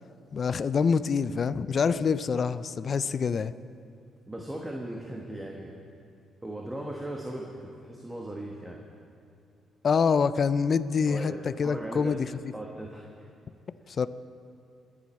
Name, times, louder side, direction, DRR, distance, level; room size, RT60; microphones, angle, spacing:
voice 1, 0.3-3.5 9.8-11.3 11.6-12.3 13.9-14.1, left 5 dB, 45° left, 14 dB, 0.4 m, -25 dB
voice 2, 4.3-5.8 6.4-8.8 11.1-12.1 12.5-13.3, right 1 dB, 10° right, -1 dB, 1.2 m, -38 dB
22.0 x 7.5 x 4.2 m, 2.6 s
cardioid pair, 90°, 0 cm